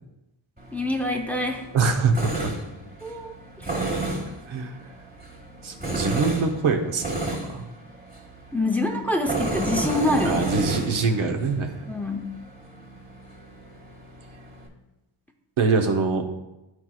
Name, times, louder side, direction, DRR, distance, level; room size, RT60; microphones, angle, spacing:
Tools, 0.6-14.7, right 2 dB, 20° right, 1.2 m, -32 dB
voice 1, 0.7-1.6 3.0-3.7 8.5-10.4 11.9-12.3, left 2 dB, 5° left, 3 dB, 0.6 m, -26 dB
voice 2, 1.7-2.5 4.5-4.8 5.6-7.7 10.2-11.7 15.6-16.2, right 4 dB, 90° right, 4 dB, 0.9 m, -24 dB
10.5 x 4.5 x 2.3 m, 0.95 s
wide cardioid pair, 115°, 47 cm